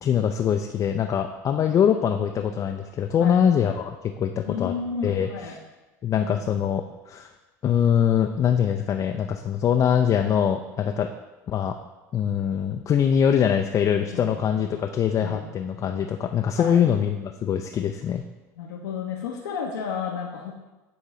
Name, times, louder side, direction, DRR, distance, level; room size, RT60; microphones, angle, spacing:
voice 1, 0.0-4.7 5.0-5.6 6.0-7.3 7.6-11.1 11.5-11.7 12.1-18.2, left 8 dB, 35° left, 4 dB, 0.4 m, -23 dB
voice 2, 4.4-5.6 14.1-14.5 15.2-15.5 16.6-16.8 18.6-20.5, left 6 dB, 85° left, -2 dB, 0.8 m, -32 dB
9.9 x 3.6 x 3.1 m, 1.1 s
hypercardioid pair, 80°, 9 cm